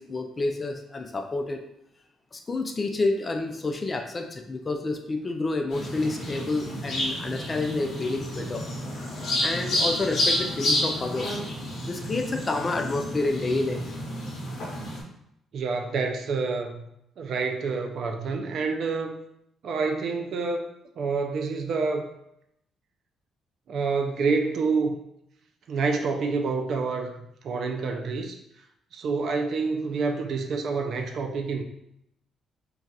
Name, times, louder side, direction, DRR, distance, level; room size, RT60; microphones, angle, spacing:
voice 1, 0.0-1.6 2.3-8.7 9.4-11.4 11.8-13.8, left 3 dB, 25° left, 5 dB, 0.4 m, -29 dB
sound 1, 5.7-15.0, left 1 dB, 50° left, 0.8 m, -30 dB
voice 2, 15.5-16.9 17.2-19.2 19.6-20.7 21.0-22.1 23.7-25.0 25.7-28.4 28.9-31.6, right 4 dB, 60° right, 4 dB, 0.4 m, -28 dB
2.3 x 2.3 x 4.0 m, 0.78 s
cardioid pair, 115°, 0 cm